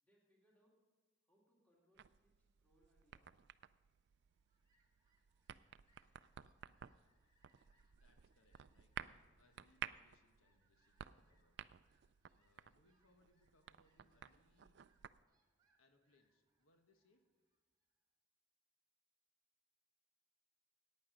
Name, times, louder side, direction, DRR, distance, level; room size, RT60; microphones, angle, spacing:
voice 1, 0.0-0.8 1.2-3.3, equal, 5° left, -3 dB, 2.4 m, -77 dB
sound 1, 2.0-15.2, right 9 dB, 55° right, 0.3 m, -55 dB
Fowl, 4.1-18.0, right 1 dB, 20° right, 1.6 m, -82 dB
voice 2, 7.9-11.6 12.3-14.8 15.8-17.2, left 2 dB, 90° left, 5 dB, 1.3 m, -76 dB
15.0 x 9.6 x 5.3 m, 1.3 s
head